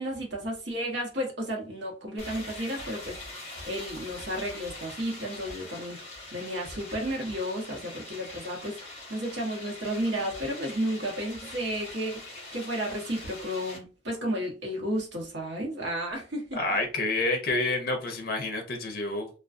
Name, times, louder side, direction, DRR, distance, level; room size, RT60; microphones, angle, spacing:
voice 1, 0.0-8.8 9.1-16.6, equal, 75° right, -1 dB, 0.9 m, -33 dB
sound 1, 2.2-13.8, left 2 dB, 35° left, 0.9 m, -43 dB
voice 2, 16.5-19.3, left 2 dB, 55° left, 4 dB, 0.6 m, -28 dB
2.4 x 2.3 x 2.4 m, 0.36 s
head